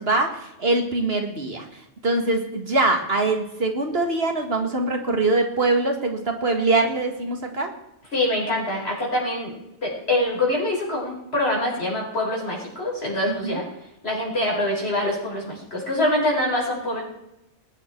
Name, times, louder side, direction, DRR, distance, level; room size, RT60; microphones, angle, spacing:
voice 1, 0.0-1.7 2.0-7.7 13.4-13.6, right 2 dB, 55° right, 4 dB, 2.2 m, -23 dB
voice 2, 8.1-9.5 9.8-13.6 14.0-17.0, left 1 dB, 60° left, -3 dB, 5.3 m, -24 dB
20.5 x 9.6 x 4.6 m, 0.89 s
omnidirectional pair, 1.2 m